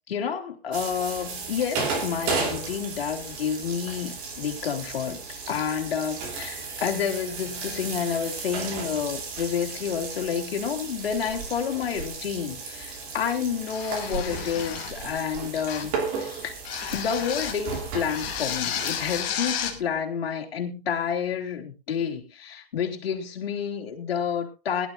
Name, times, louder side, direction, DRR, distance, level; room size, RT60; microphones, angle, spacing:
voice 1, 0.1-5.2 5.5-16.5 16.9-24.9, left 7 dB, 70° left, 3.3 m, -29 dB
sound 1, 0.7-19.2, right 4 dB, 30° right, 3.1 m, -34 dB
sound 2, 13.7-15.0 15.7-16.0 16.6-17.7 18.1-19.8, left 9 dB, 25° left, 2.5 m, -32 dB
21.5 x 11.5 x 2.5 m
hypercardioid pair, 160°, 31 cm